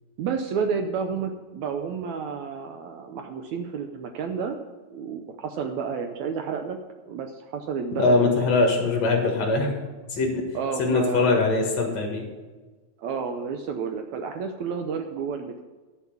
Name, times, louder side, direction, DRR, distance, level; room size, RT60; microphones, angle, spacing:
voice 1, 0.2-4.6 4.9-6.8 7.1-8.5 10.5-11.3 13.0-15.6, right 6 dB, 80° right, 5 dB, 1.6 m, -30 dB
voice 2, 8.0-9.8 10.1-10.4 10.8-12.2, left 3 dB, 55° left, 1 dB, 2.6 m, -22 dB
11.0 x 7.1 x 7.0 m, 1.3 s
omnidirectional pair, 4.1 m